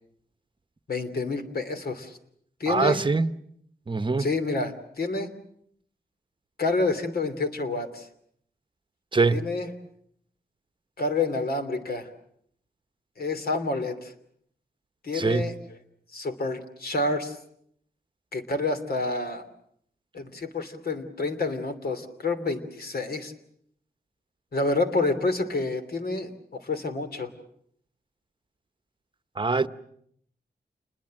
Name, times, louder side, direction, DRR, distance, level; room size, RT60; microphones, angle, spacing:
voice 1, 0.9-2.2 2.6-3.0 4.2-5.3 6.6-8.1 9.3-9.7 11.0-12.1 13.2-14.1 15.0-15.5 16.1-17.4 18.3-19.4 20.1-23.3 24.5-27.3, left 3 dB, 65° left, 2.9 m, -28 dB
voice 2, 2.7-3.3 3.9-4.3 9.1-9.4 15.1-15.5 29.4-29.7, right 3 dB, 30° right, 1.0 m, -23 dB
28.5 x 21.0 x 7.6 m
wide cardioid pair, 90°, 17 cm